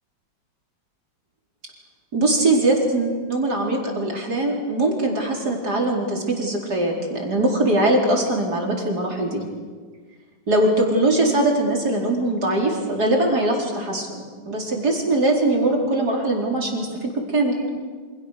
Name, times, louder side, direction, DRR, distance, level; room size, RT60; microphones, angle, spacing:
voice 1, 2.1-9.4 10.5-17.6, right 2 dB, 55° right, -1 dB, 5.0 m, -21 dB
29.0 x 27.0 x 6.8 m, 1.5 s
omnidirectional pair, 2.0 m